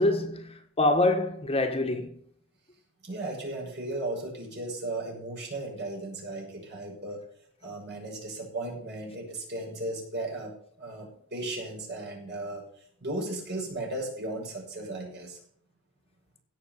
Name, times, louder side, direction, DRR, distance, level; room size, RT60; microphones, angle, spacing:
voice 1, 0.0-2.2, left 2 dB, 30° left, 1.6 m, -25 dB
voice 2, 3.0-7.2 7.6-15.4, right 2 dB, 55° right, 6.1 m, -36 dB
16.5 x 6.7 x 6.7 m
head